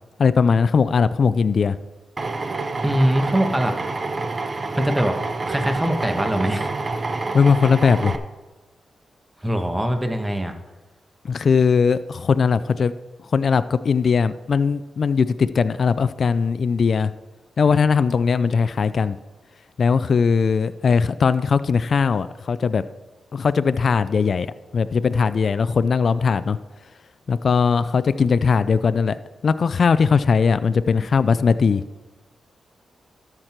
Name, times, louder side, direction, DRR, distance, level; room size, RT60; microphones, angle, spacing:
voice 1, 0.2-1.8 7.3-8.2 11.2-12.9 13.2-17.1 17.6-19.2 19.8-22.8 23.3-26.6 27.3-31.8, left 5 dB, 60° left, 14 dB, 0.3 m, -19 dB
Drill, 2.2-8.2, right 3 dB, 45° right, 0.8 m, -27 dB
voice 2, 2.8-3.7 4.8-5.2 5.4-6.7 9.4-10.5, right 1 dB, 15° right, 6 dB, 1.4 m, -22 dB
13.0 x 6.0 x 4.5 m, 1.1 s
supercardioid pair, 50°, 0 cm